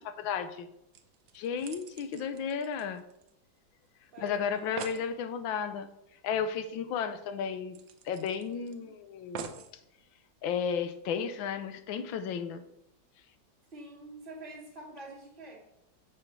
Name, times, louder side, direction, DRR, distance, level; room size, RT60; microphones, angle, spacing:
voice 1, 0.0-0.7 1.3-3.0 4.2-5.9 6.2-7.8 8.0-9.5 10.4-12.6, left 7 dB, 90° left, 10 dB, 1.5 m, -33 dB
sound 1, 0.6-0.7 0.9-3.6 3.9-4.0 4.3-4.4 4.6-5.1 6.6-6.7 7.0-7.1 7.7-8.7 9.3-9.8 10.5-10.6, right 8 dB, 75° right, 1.4 m, -45 dB
voice 2, 4.1-4.7 13.7-15.6, right 2 dB, 25° right, -4 dB, 2.5 m, -46 dB
7.1 x 4.5 x 6.8 m, 0.81 s
omnidirectional pair, 2.1 m